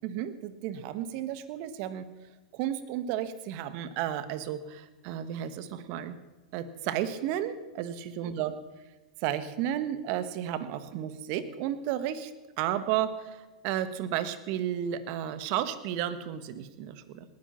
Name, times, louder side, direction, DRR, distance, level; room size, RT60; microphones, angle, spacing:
voice 1, 0.0-2.1 2.5-6.2 6.5-8.5 9.2-12.3 12.6-17.2, right 11 dB, 55° right, 12 dB, 1.4 m, -33 dB
19.0 x 11.0 x 5.8 m, 1.2 s
hypercardioid pair, 100°, 3 cm